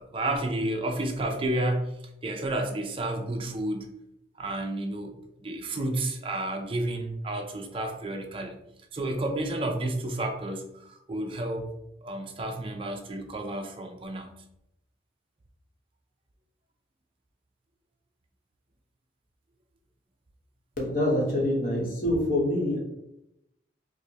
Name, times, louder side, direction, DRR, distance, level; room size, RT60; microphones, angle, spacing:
voice 1, 0.0-1.9 2.2-3.9 4.4-8.5 8.9-11.7 12.0-14.3, right 1 dB, 30° right, 4 dB, 0.4 m, -31 dB
voice 2, 20.8-22.8, left 1 dB, 45° left, -2 dB, 1.0 m, -25 dB
4.8 x 2.1 x 2.8 m, 0.84 s
head